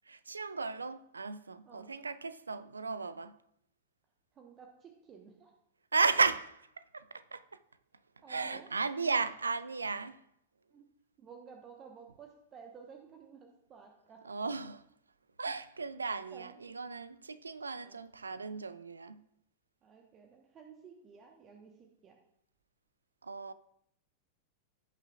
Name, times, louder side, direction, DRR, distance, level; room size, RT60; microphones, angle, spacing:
voice 1, 0.1-3.4 5.9-7.4 8.3-10.2 14.3-14.8 15.4-19.2 23.2-23.5, right 4 dB, 75° right, 0.4 m, -35 dB
voice 2, 1.6-2.0 4.3-5.5 8.2-8.7 10.7-10.8 11.2-14.2 16.3-16.9 17.8-18.0 19.8-22.2, right 6 dB, 30° right, 1.1 m, -54 dB
16.0 x 5.7 x 2.4 m
figure-of-eight pair, 90°, 0 cm